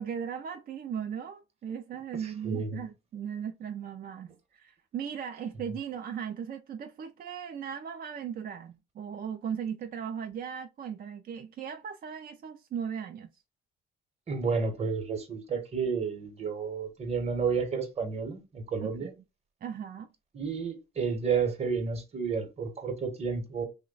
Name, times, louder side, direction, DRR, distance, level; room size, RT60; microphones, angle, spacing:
voice 1, 0.0-13.3 18.8-19.1 19.6-20.1, right 8 dB, 50° right, 0.4 m, -37 dB
voice 2, 2.4-2.8 14.3-19.1 20.3-23.7, right 5 dB, 30° right, 0.9 m, -31 dB
3.0 x 2.1 x 3.8 m
cardioid pair, 90°, 20 cm